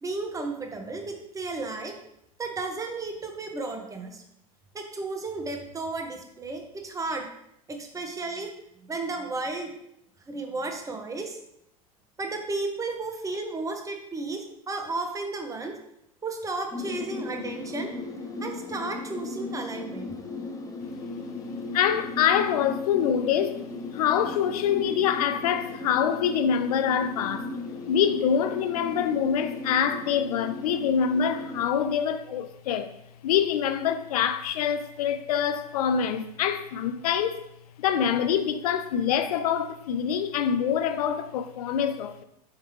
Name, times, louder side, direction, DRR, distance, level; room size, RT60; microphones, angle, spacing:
voice 1, 0.0-1.9 2.4-4.2 4.7-7.3 7.7-8.5 8.9-9.7 10.3-11.4 12.2-15.7 16.2-17.9 18.4-20.1 32.2-32.4, right 3 dB, 15° right, 0.8 m, -33 dB
sound 1, 16.7-31.7, left 3 dB, 15° left, 0.6 m, -37 dB
voice 2, 21.7-23.6 23.9-27.5 27.9-32.9 33.2-37.4 37.8-42.2, left 8 dB, 75° left, 0.4 m, -25 dB
4.5 x 3.6 x 3.1 m
hypercardioid pair, 90°, 20 cm